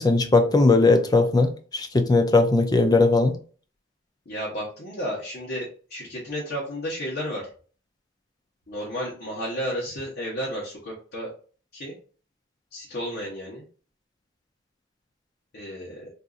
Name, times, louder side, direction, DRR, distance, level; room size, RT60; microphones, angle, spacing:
voice 1, 0.0-3.3, left 3 dB, 20° left, 7 dB, 0.4 m, -19 dB
voice 2, 4.3-7.5 8.7-11.3 11.7-11.9 12.7-13.6 15.5-16.1, equal, 55° left, -5 dB, 1.0 m, -32 dB
3.7 x 2.6 x 2.4 m, 0.41 s
head